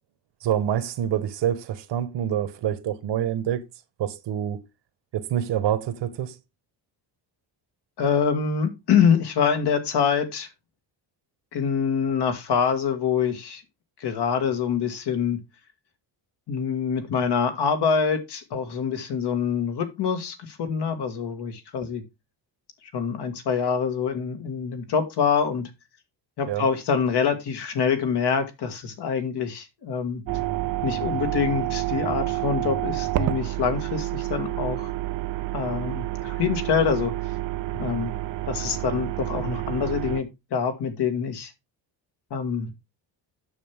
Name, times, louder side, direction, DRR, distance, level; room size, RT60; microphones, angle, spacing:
voice 1, 0.4-3.6 4.0-4.6 5.1-6.4 26.5-26.7, right 10 dB, 75° right, 1.3 m, -26 dB
voice 2, 8.0-10.5 11.5-13.6 14.0-15.4 16.5-22.0 22.9-25.7 26.4-30.2 30.8-34.9 35.5-37.1 37.8-38.2 38.5-41.5 42.3-42.7, left 6 dB, 65° left, 2.0 m, -25 dB
sound 1, 30.3-40.2, right 16 dB, 50° right, 0.5 m, -29 dB
9.3 x 7.2 x 3.5 m
cardioid pair, 150°, 43 cm